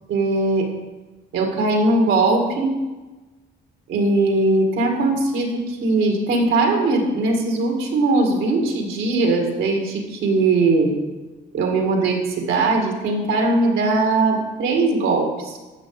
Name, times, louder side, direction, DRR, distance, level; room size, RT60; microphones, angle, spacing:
voice 1, 0.1-0.7 1.3-2.7 3.9-11.0 11.5-15.6, right 2 dB, 85° right, 2 dB, 2.2 m, -20 dB
12.5 x 7.1 x 4.9 m, 1.2 s
cardioid pair, 90°, 20 cm